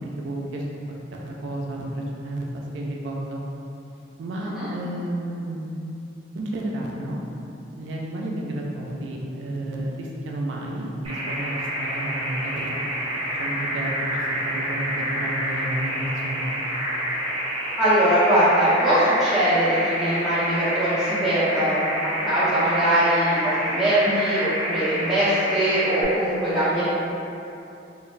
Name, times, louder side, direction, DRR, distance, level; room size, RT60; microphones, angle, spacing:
voice 1, 0.0-3.4 4.2-5.7 6.3-7.2 7.8-12.7 13.3-16.5, right 1 dB, 75° right, -2 dB, 0.3 m, -31 dB
sound 1, 11.0-26.0, equal, 30° right, 0.7 m, -28 dB
voice 2, 17.8-21.8 22.2-26.8, right 1 dB, ahead, -15 dB, 1.0 m, -21 dB
3.7 x 2.0 x 2.5 m, 2.8 s
head